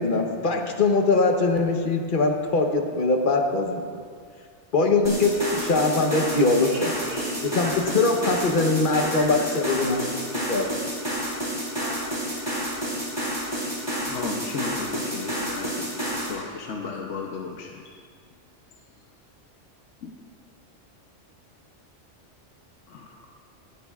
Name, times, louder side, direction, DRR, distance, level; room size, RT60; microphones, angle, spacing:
voice 1, 0.0-4.0 4.7-6.9 7.4-10.1 10.5-10.7, left 3 dB, 45° left, 3 dB, 1.1 m, -22 dB
sound 1, 5.0-16.3, equal, 25° right, 3.2 m, -30 dB
voice 2, 6.6-8.4 9.1-9.6 11.7-12.4, equal, 40° right, -8 dB, 2.4 m, -41 dB
voice 3, 14.1-18.0 20.0-20.2 22.9-23.2, left 5 dB, 80° left, 1 dB, 1.1 m, -35 dB
19.0 x 11.5 x 2.4 m, 2.1 s
omnidirectional pair, 1.3 m